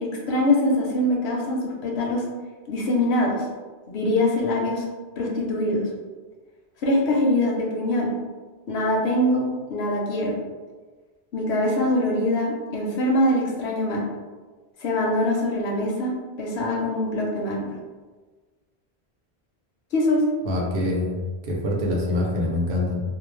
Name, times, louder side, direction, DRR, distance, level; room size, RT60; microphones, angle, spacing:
voice 1, 0.0-2.2 2.7-3.3 3.9-4.8 5.2-5.8 6.8-8.1 8.7-10.4 11.3-14.0 14.8-16.1 16.4-17.7 19.9-20.2, left 1 dB, 80° left, -2 dB, 0.9 m, -23 dB
voice 2, 20.5-21.2 21.4-23.0, left 1 dB, 70° right, -2 dB, 0.8 m, -25 dB
2.4 x 2.1 x 3.1 m, 1.4 s
omnidirectional pair, 1.0 m